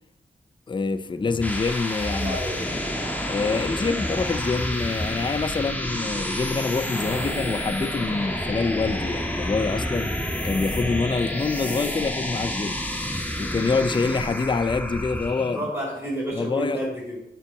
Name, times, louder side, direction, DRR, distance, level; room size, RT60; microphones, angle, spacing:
voice 1, 0.7-2.8 3.3-10.1 10.4-12.8 13.4-15.6 16.3-16.8, left 4 dB, 25° left, 0.5 m, -26 dB
sound 1, 1.1-15.7, equal, 10° left, 1.5 m, -29 dB
voice 2, 2.0-2.7 15.5-17.2, right 1 dB, 10° right, 4.3 m, -30 dB
12.0 x 5.4 x 6.4 m
wide cardioid pair, 140°, 18 cm